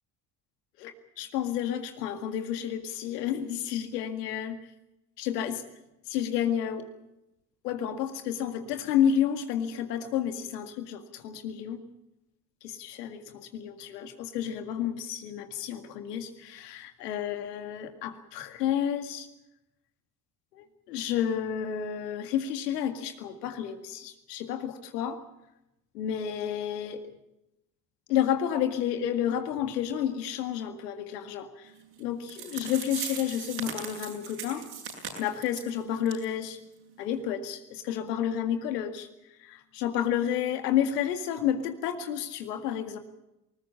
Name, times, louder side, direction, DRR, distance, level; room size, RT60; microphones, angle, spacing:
voice 1, 0.8-4.6 5.2-5.6 6.1-6.9 7.6-11.8 12.6-19.3 20.6-25.2 25.9-27.1 28.1-31.7 32.0-34.7 35.2-36.6 37.0-39.1 39.4-43.0, left 9 dB, 85° left, 7 dB, 2.1 m, -30 dB
sound 1, 32.0-32.1 32.3-35.7 36.1-36.2 36.5-36.6 37.1-37.2, right 7 dB, 65° right, 7.9 m, -38 dB
20.0 x 20.0 x 8.5 m, 0.91 s
hypercardioid pair, 60°, 46 cm